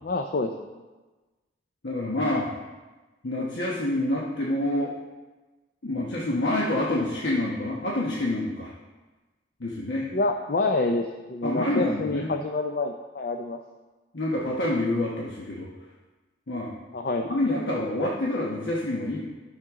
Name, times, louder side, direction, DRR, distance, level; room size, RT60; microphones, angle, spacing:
voice 1, 0.0-0.5 10.1-13.6 16.9-17.3, left 2 dB, 55° left, 5 dB, 0.5 m, -27 dB
voice 2, 1.8-2.5 3.2-5.0 5.8-8.7 9.6-10.1 11.4-12.3 14.1-15.7 16.5-16.7 17.2-19.2, left 1 dB, 75° left, -4 dB, 1.1 m, -27 dB
12.0 x 6.6 x 3.6 m, 1.2 s
head